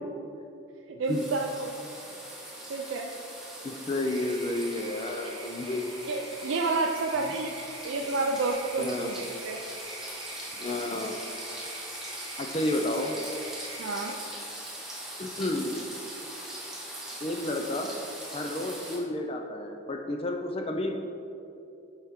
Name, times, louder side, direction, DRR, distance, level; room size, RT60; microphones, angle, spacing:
voice 1, 0.9-1.7 2.7-3.1 6.1-7.5 7.8-9.2 9.4-9.6 13.8-14.2, right 3 dB, 75° right, 1 dB, 0.4 m, -29 dB
sound 1, 1.0-19.0, right 1 dB, ahead, 0.9 m, -41 dB
voice 2, 3.6-5.8 7.2-7.3 8.8-9.1 10.6-11.2 12.4-13.2 15.2-15.8 17.2-17.9 18.3-21.0, left 1 dB, 30° left, 3 dB, 0.4 m, -31 dB
sound 2, 4.1-14.1, right 3 dB, 25° right, 0.8 m, -46 dB
8.0 x 4.4 x 3.6 m, 2.7 s
head